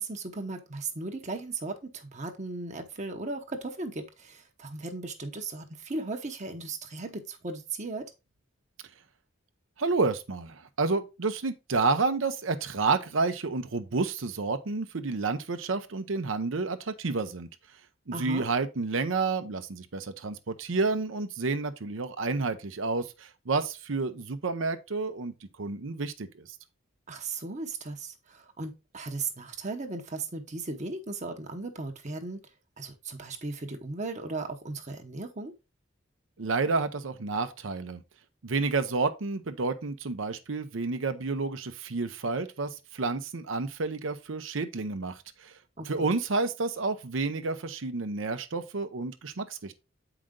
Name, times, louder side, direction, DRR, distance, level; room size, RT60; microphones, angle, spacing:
voice 1, 0.0-8.1 18.1-18.5 27.1-32.4 32.8-35.5 45.8-46.1, right 3 dB, 35° right, 0.9 m, -36 dB
voice 2, 9.8-17.5 18.1-25.3 25.6-26.5 36.4-38.0 38.4-45.5 45.9-49.7, right 3 dB, 75° right, 0.7 m, -30 dB
7.6 x 5.0 x 3.7 m
head